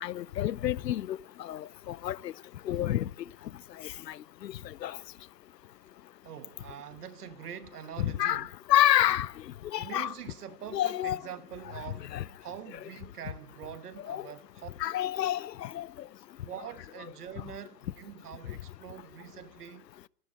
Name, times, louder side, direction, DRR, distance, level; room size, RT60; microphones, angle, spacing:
voice 1, 0.0-2.3 2.7-3.1 4.1-4.2 4.4-4.5 4.8-5.0 8.0-9.3 9.7-10.1 10.7-11.2 12.1-12.2 14.1-14.2 14.8-15.9, left 12 dB, 80° left, 0.6 m, -28 dB
voice 2, 6.2-8.5 9.8-12.1 12.4-14.7 16.4-19.8, right 9 dB, 65° right, 1.3 m, -44 dB
12.5 x 11.0 x 9.4 m
hypercardioid pair, 135°, 49 cm